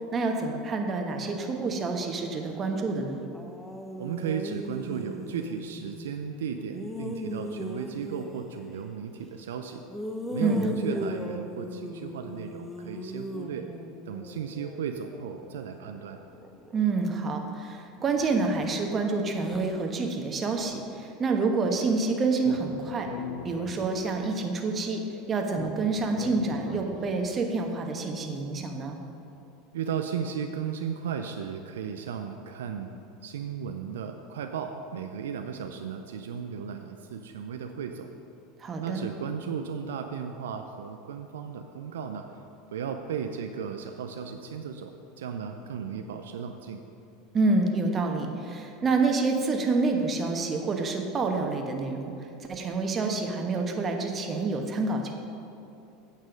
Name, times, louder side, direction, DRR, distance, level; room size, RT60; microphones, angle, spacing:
voice 1, 0.1-3.2 10.4-10.6 16.7-23.1 23.4-25.0 25.3-29.0 38.6-39.0 47.3-52.1 52.4-55.1, right 3 dB, 30° right, 3 dB, 1.3 m, -28 dB
sound 1, 1.2-2.7 3.2-6.2 6.7-8.6 9.9-17.5 18.1-18.7 19.3-19.8 20.5-20.7, equal, 5° left, 0.9 m, -39 dB
voice 2, 4.0-9.8 10.3-13.7 14.1-16.2 29.7-32.9 33.2-38.1 38.8-42.3 42.7-46.8, right 7 dB, 75° right, 5 dB, 0.5 m, -35 dB
Speech, 22.4-24.3 25.5-27.3, left 5 dB, 55° left, 0.8 m, -40 dB
9.0 x 7.4 x 5.2 m, 2.8 s
hypercardioid pair, 85°, 0 cm